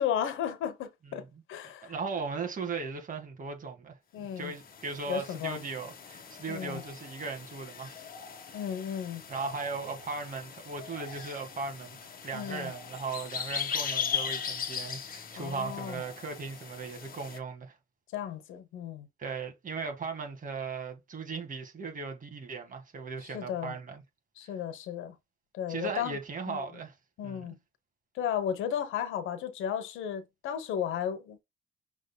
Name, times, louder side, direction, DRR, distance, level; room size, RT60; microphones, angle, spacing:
voice 1, 0.0-1.9 4.1-4.5 5.1-5.6 6.5-6.8 8.5-9.2 12.3-12.7 15.4-16.0 18.1-19.1 23.2-23.7 24.4-25.2 25.5-26.2 26.5-26.6 27.2-27.6 28.1-31.4, left 9 dB, 90° left, 0.9 m, -34 dB
voice 2, 1.8-8.0 9.3-17.7 19.2-24.0 25.7-26.9 27.2-27.5, right 4 dB, 40° right, 1.8 m, -37 dB
sound 1, 4.4-17.4, left 7 dB, 45° left, 1.4 m, -39 dB
6.2 x 3.6 x 2.2 m
cardioid pair, 90°, 20 cm